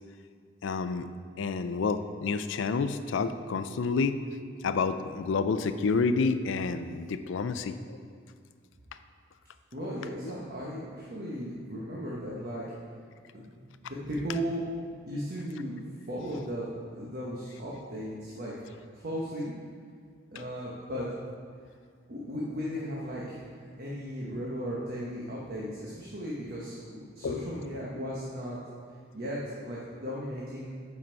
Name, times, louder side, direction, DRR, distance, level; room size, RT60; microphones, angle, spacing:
voice 1, 0.6-1.1 1.4-4.2 4.6-8.0 10.2-10.3 27.2-27.5, left 4 dB, 70° left, 11 dB, 0.4 m, -29 dB
voice 2, 9.7-12.6 13.3-14.6 15.0-15.8 16.1-18.5 18.9-19.5 20.3-21.1 22.1-28.6 29.1-30.8, equal, 50° right, -5 dB, 1.1 m, -36 dB
7.7 x 5.5 x 4.5 m, 2.1 s
head